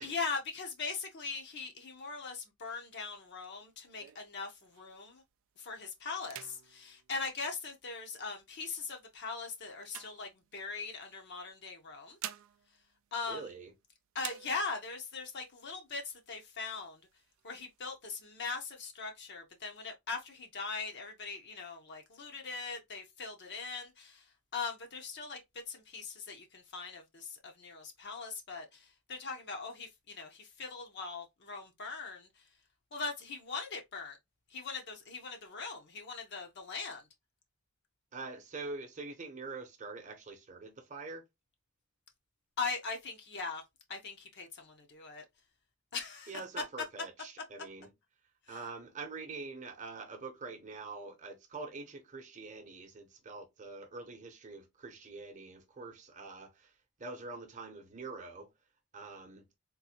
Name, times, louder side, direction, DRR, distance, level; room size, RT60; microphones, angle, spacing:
voice 1, 0.0-5.2 5.6-12.2 13.1-13.5 14.1-17.0 17.4-24.2 24.5-25.4 25.7-32.3 32.9-34.2 34.5-37.0 42.6-43.6 43.9-45.2 45.9-46.3 48.5-48.6, left 4 dB, 50° left, 0.7 m, -40 dB
sound 1, 2.9-5.1 5.6-5.8 6.2-8.1 8.8-10.9 11.8-13.8 14.2-15.0 15.5-15.6 15.8-16.5 17.0-17.9, right 12 dB, 60° right, 0.3 m, -50 dB
voice 2, 13.3-13.7 38.1-41.2 46.3-47.9 48.5-56.7 57.0-58.5 58.9-59.5, right 3 dB, 35° right, 0.8 m, -45 dB
3.7 x 2.5 x 2.8 m
head